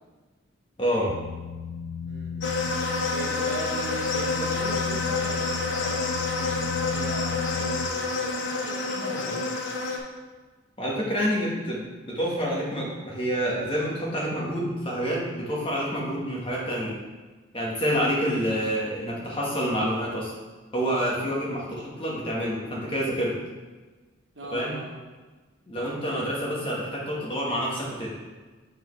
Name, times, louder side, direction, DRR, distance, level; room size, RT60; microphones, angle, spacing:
voice 1, 0.8-1.1 8.9-9.4 10.8-17.0 17.5-20.3 20.7-23.3 24.5-24.8 25.7-28.2, equal, 25° left, -5 dB, 1.3 m, -28 dB
sound 1, 1.1-7.9, left 6 dB, 85° left, 0.3 m, -35 dB
voice 2, 2.0-2.5 3.1-9.7 24.3-25.0, right 1 dB, 65° right, -2 dB, 1.1 m, -39 dB
sound 2, 2.4-10.0, left 3 dB, 70° left, 0.8 m, -28 dB
6.7 x 4.6 x 3.1 m, 1.3 s
head